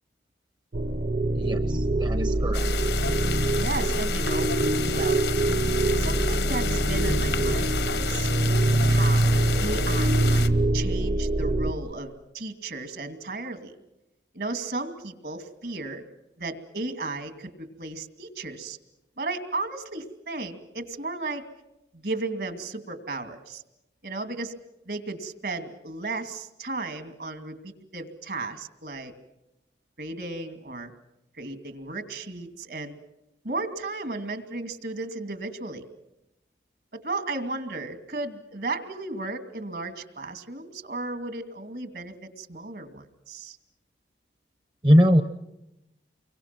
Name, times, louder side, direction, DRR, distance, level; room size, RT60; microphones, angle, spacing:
sound 1, 0.7-11.7, right 2 dB, 50° right, 1.0 m, -24 dB
voice 1, 1.4-2.9 44.8-45.2, equal, 25° right, 8 dB, 0.8 m, -21 dB
sound 2, 2.5-10.5, left 6 dB, 80° left, 1.4 m, -31 dB
voice 2, 3.6-4.5 4.9-5.3 6.0-8.3 8.9-13.7 14.3-16.0 16.4-18.8 19.2-21.4 21.9-23.6 24.0-24.6 24.9-29.1 30.0-30.9 31.4-33.0 33.4-35.9 36.9-43.6, right 2 dB, 65° right, 7 dB, 2.6 m, -34 dB
30.0 x 23.5 x 6.0 m, 0.90 s
head